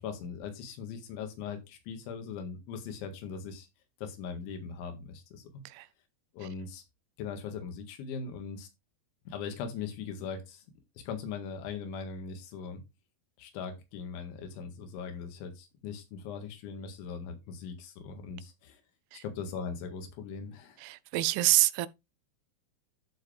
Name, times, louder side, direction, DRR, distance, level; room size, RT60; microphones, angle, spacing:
voice 1, 0.0-3.7 4.0-5.6 6.3-6.8 7.2-8.7 9.3-10.6 11.0-12.8 13.4-18.8 19.1-20.8, left 6 dB, 80° left, 4.2 m, -40 dB
voice 2, 20.8-21.9, right 18 dB, 85° right, 3.1 m, -27 dB
12.5 x 4.8 x 3.3 m
omnidirectional pair, 5.4 m